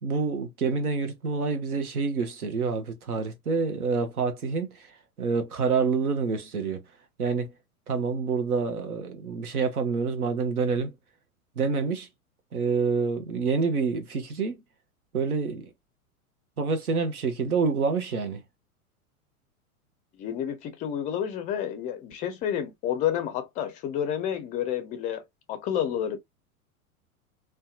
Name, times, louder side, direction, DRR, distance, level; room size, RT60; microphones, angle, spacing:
voice 1, 0.0-6.8 7.2-7.5 7.9-10.9 11.6-12.1 12.5-14.6 15.1-15.7 16.6-18.4, right 5 dB, 80° right, 0.8 m, -27 dB
voice 2, 20.2-26.2, left 9 dB, 20° left, 0.4 m, -30 dB
2.7 x 2.2 x 2.2 m
figure-of-eight pair, 90°, 43 cm